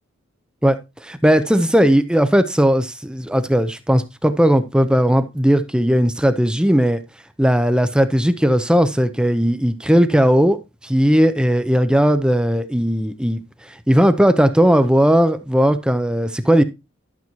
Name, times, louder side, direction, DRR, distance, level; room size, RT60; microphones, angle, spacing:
voice 1, 0.6-7.0 7.4-16.6, equal, 5° right, 0.5 m, -17 dB
12.0 x 7.0 x 3.0 m
head